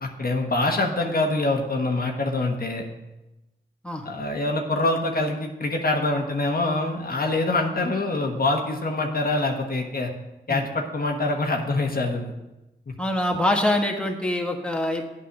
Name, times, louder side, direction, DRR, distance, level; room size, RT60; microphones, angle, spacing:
voice 1, 0.0-2.8 4.0-10.1 10.5-12.3 12.9-13.0, left 2 dB, 50° left, 2 dB, 1.3 m, -25 dB
voice 2, 13.0-15.0, left 1 dB, 5° left, 2 dB, 1.4 m, -24 dB
8.5 x 5.4 x 6.5 m, 0.98 s
cardioid pair, 40°, 20 cm